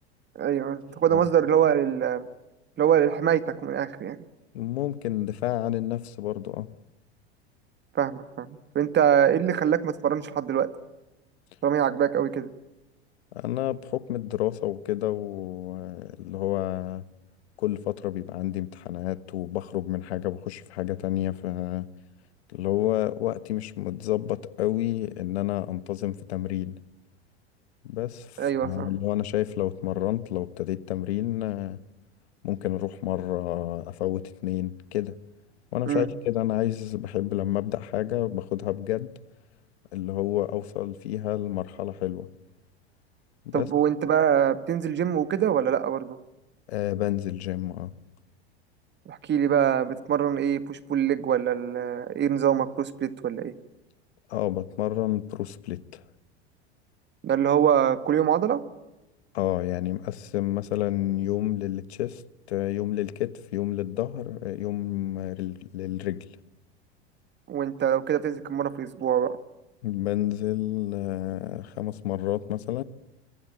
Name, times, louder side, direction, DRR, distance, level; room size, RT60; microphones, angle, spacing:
voice 1, 0.4-2.3 2.8-4.2 8.0-10.7 11.6-12.5 28.4-28.9 35.9-36.1 43.5-46.2 49.1-53.5 57.2-58.6 67.5-69.3, right 9 dB, 35° right, 2.0 m, -24 dB
voice 2, 4.5-6.7 13.3-17.0 17.6-21.9 22.5-26.7 27.8-31.8 32.4-35.2 35.7-39.1 39.9-42.3 43.4-43.7 46.7-47.9 54.3-56.0 59.3-62.2 62.5-66.2 69.8-72.8, left 14 dB, 75° left, 1.4 m, -29 dB
27.0 x 24.0 x 8.9 m
hypercardioid pair, 90°, 33 cm